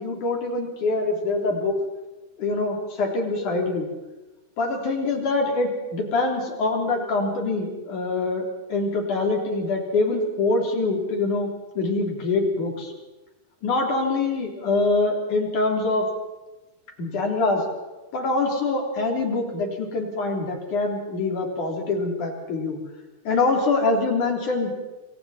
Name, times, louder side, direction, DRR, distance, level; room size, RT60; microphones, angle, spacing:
voice 1, 0.0-1.8 2.4-3.9 4.6-8.4 8.7-11.5 11.8-12.9 13.6-16.1 17.0-17.6 18.1-22.8 23.2-24.8, left 3 dB, 45° left, 1 dB, 4.3 m, -24 dB
26.5 x 26.0 x 4.3 m, 1.1 s
omnidirectional pair, 5.5 m